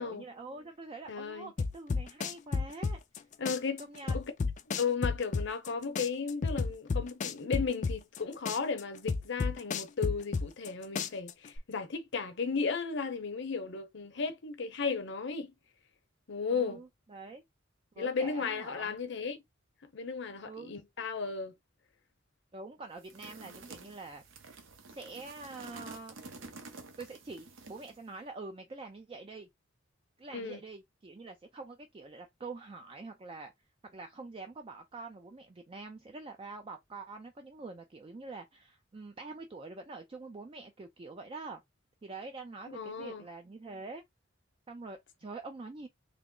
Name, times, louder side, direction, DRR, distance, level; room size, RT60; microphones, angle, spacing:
voice 1, 0.0-3.0 3.8-4.2 16.5-17.4 18.0-18.9 20.4-20.7 22.5-24.2 24.9-26.2 27.0-29.5 30.2-33.5 33.8-41.6 42.0-44.0 44.7-45.9, right 3 dB, 30° right, 0.4 m, -45 dB
voice 2, 1.1-1.5 3.4-3.8 4.1-4.2 4.8-15.5 16.3-16.8 18.0-19.4 19.9-21.6 23.4-23.6 23.8-23.9 30.3-30.6 42.7-43.2, left 5 dB, 65° left, 0.8 m, -35 dB
sound 1, 1.6-3.2 3.4-5.7 5.9-8.2 8.4-10.7 10.9-11.6, left 4 dB, 40° left, 0.4 m, -31 dB
sound 2, 23.0-28.1, right 3 dB, 80° right, 0.7 m, -50 dB
3.5 x 2.0 x 3.7 m
head